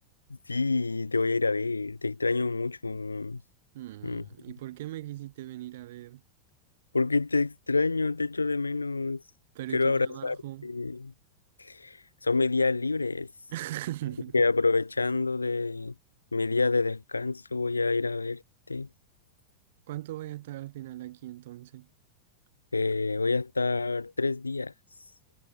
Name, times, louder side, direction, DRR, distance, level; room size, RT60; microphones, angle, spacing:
voice 1, 0.5-3.4 4.0-4.2 6.9-9.2 9.7-10.4 10.6-11.1 11.6-12.0 12.2-13.3 14.3-15.9 16.3-18.4 18.7-18.9 22.7-24.7, left 3 dB, 80° left, 0.9 m, -27 dB
voice 2, 3.7-6.2 9.6-10.7 13.5-14.3 19.9-21.9, right 15 dB, 55° right, 1.9 m, -39 dB
figure-of-eight pair, 90°, 0 cm